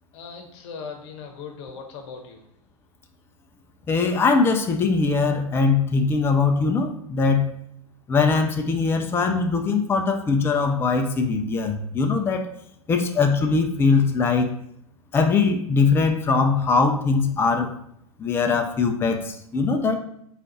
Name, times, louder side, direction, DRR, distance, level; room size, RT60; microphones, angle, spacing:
voice 1, 0.1-2.4, left 5 dB, 50° left, 3 dB, 0.9 m, -38 dB
voice 2, 3.9-7.5 8.1-12.5 12.9-14.5 15.1-17.7 18.2-20.0, left 4 dB, 10° left, 4 dB, 0.4 m, -21 dB
3.7 x 2.4 x 4.2 m, 0.70 s
figure-of-eight pair, 85°, 19 cm